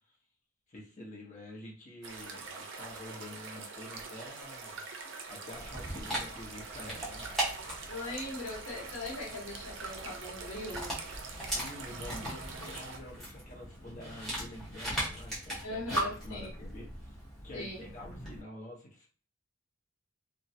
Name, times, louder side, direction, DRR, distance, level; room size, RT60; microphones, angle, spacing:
voice 1, 0.7-4.8 5.3-7.9 11.4-17.2 17.4-19.1, left 1 dB, 35° left, -3 dB, 0.8 m, -48 dB
sound 1, 2.0-13.0, right 4 dB, 60° right, 0.5 m, -44 dB
Dog, 5.5-18.4, right 1 dB, ahead, 1.0 m, -39 dB
voice 2, 7.9-10.9 15.6-16.5 17.5-17.9, left 2 dB, 75° left, -3 dB, 0.9 m, -40 dB
3.0 x 2.2 x 2.7 m, 0.41 s
head